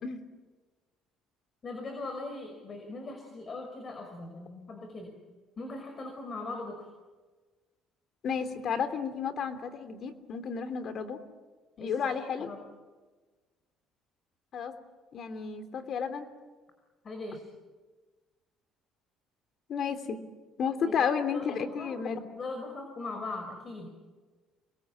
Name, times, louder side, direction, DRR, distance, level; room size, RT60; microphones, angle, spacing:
voice 1, 1.6-5.1 5.6-6.9 11.8-12.6 17.0-17.4 21.3-22.0 22.3-23.9, left 3 dB, 40° left, 4 dB, 5.7 m, -40 dB
voice 2, 8.2-11.2 11.8-12.5 14.5-14.8 15.1-16.3 19.7-20.2 20.6-22.2, left 6 dB, 55° left, 9 dB, 3.1 m, -32 dB
28.0 x 21.5 x 8.8 m, 1.3 s
cardioid pair, 90°, 0 cm